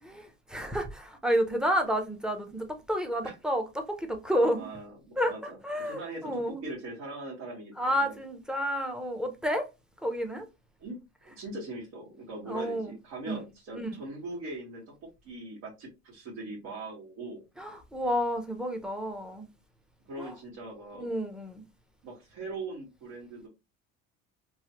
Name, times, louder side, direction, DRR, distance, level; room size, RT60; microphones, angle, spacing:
voice 1, 0.0-4.7 5.2-5.3 5.6-6.6 7.8-9.7 10.0-10.5 12.5-12.9 13.3-13.4 13.7-13.9 17.6-19.5 20.2-20.3 20.9-21.6, equal, ahead, 0.6 m, -30 dB
voice 2, 4.6-8.2 10.8-11.0 11.3-17.4 20.1-21.1 22.0-23.5, right 2 dB, 70° right, 1.5 m, -41 dB
3.1 x 2.2 x 2.9 m
cardioid pair, 120°, 29 cm